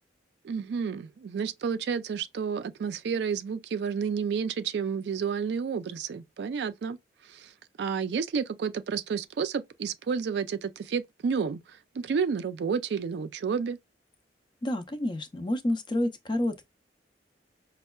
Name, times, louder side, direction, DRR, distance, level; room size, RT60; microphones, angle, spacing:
voice 1, 0.4-7.0 7.2-7.5 7.8-13.8, right 6 dB, 65° right, 0.3 m, -30 dB
voice 2, 14.6-16.7, left 1 dB, 25° left, 0.4 m, -29 dB
5.2 x 2.2 x 2.2 m
head